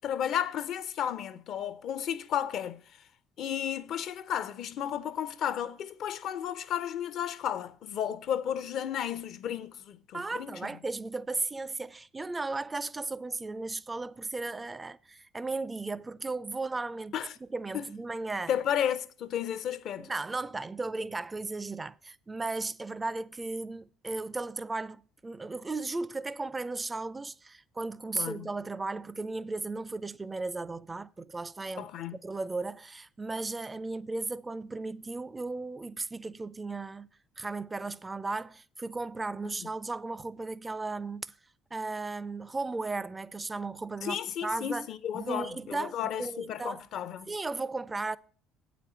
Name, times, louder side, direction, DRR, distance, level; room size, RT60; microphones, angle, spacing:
voice 1, 0.0-2.8 3.4-10.6 17.1-17.3 17.7-17.8 18.5-20.1 28.1-28.5 31.8-32.1 39.4-39.5 44.0-47.3, left 9 dB, 60° left, 0.6 m, -33 dB
voice 2, 10.1-18.5 20.0-37.1 37.4-41.3 41.7-44.9 45.1-46.8 47.3-48.2, right 3 dB, 20° right, 0.5 m, -36 dB
8.4 x 5.1 x 7.2 m
hypercardioid pair, 60°, 0 cm